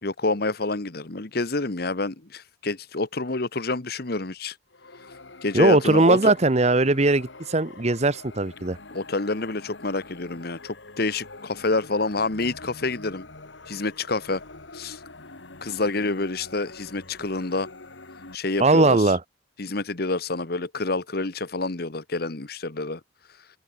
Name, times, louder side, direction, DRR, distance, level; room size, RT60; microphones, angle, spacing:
voice 1, 0.0-4.5 5.4-6.3 8.9-13.3 13.7-14.4 14.7-15.0 15.6-17.7 18.3-19.1 19.6-23.0, left 3 dB, 55° left, 1.3 m, -28 dB
sound 1, 4.7-18.4, left 2 dB, 80° left, 3.0 m, -45 dB
voice 2, 5.5-8.8 18.6-19.2, right 2 dB, 35° right, 1.1 m, -19 dB
open air
head